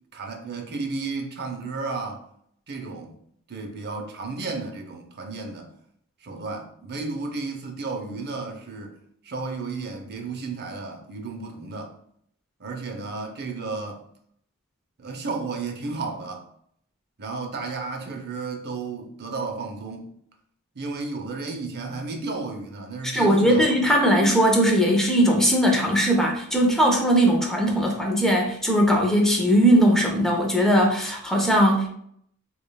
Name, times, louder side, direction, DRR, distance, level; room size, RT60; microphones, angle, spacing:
voice 1, 0.1-2.2 2.7-3.1 3.5-5.7 6.2-9.0 9.2-11.9 12.6-14.0 15.0-16.4 17.2-20.1 20.7-23.9, right 3 dB, 50° right, 0.6 m, -33 dB
voice 2, 23.0-31.9, equal, ahead, 0.6 m, -19 dB
5.2 x 2.4 x 2.3 m
head